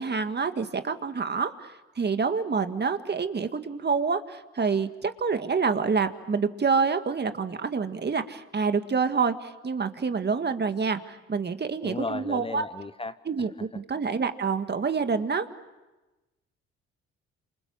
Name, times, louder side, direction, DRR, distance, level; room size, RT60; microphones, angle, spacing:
voice 1, 0.0-12.6 13.3-15.5, right 5 dB, 35° right, 9 dB, 1.9 m, -27 dB
voice 2, 11.8-13.1, left 3 dB, 20° left, 12 dB, 1.0 m, -34 dB
28.5 x 27.0 x 7.3 m, 1.1 s
supercardioid pair, 60°, 29 cm